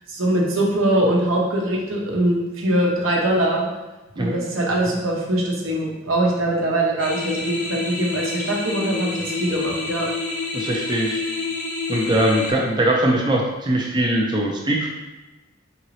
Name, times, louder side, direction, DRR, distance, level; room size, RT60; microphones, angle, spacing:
voice 1, 0.1-3.7 4.2-10.1, right 1 dB, 80° right, -1 dB, 0.9 m, -22 dB
sound 1, 7.0-12.5, left 3 dB, 40° left, 0.6 m, -28 dB
voice 2, 10.5-11.2 11.9-14.9, right 1 dB, 20° right, -1 dB, 0.4 m, -21 dB
4.0 x 3.9 x 3.1 m, 1.1 s
head